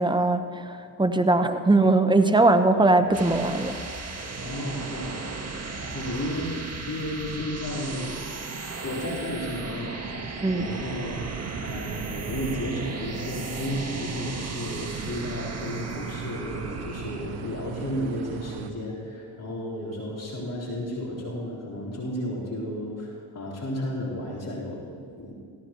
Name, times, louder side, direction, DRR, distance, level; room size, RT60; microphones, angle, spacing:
voice 1, 0.0-3.8 10.4-10.7, right 2 dB, 10° right, 8 dB, 1.0 m, -21 dB
sound 1, 2.9-17.4, right 3 dB, 35° right, 1.8 m, -36 dB
voice 2, 4.4-5.2 5.5-5.7 5.9-8.2 8.8-10.0 10.5-11.2 11.6-25.3, left 1 dB, 45° left, -7 dB, 4.1 m, -33 dB
sound 2, 10.7-18.7, right 8 dB, 80° right, 0.9 m, -38 dB
17.5 x 15.0 x 3.0 m, 2.2 s
hypercardioid pair, 50°, 45 cm